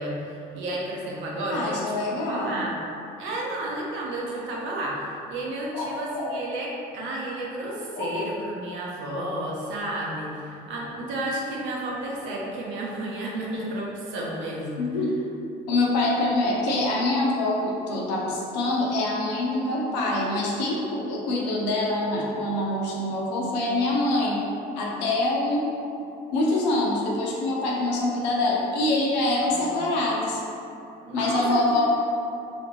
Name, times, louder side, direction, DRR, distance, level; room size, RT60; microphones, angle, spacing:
voice 1, 0.0-2.7 3.2-14.9 29.5-29.8 31.1-32.0, right 1 dB, 65° right, -3 dB, 0.8 m, -32 dB
voice 2, 1.5-2.7 5.7-6.4 8.0-8.1 14.8-15.1 15.7-24.4 24.8-25.7 26.3-30.4 31.1-32.0, left 2 dB, 90° left, -3 dB, 0.7 m, -25 dB
3.3 x 2.8 x 3.1 m, 2.7 s
hypercardioid pair, 65°, 21 cm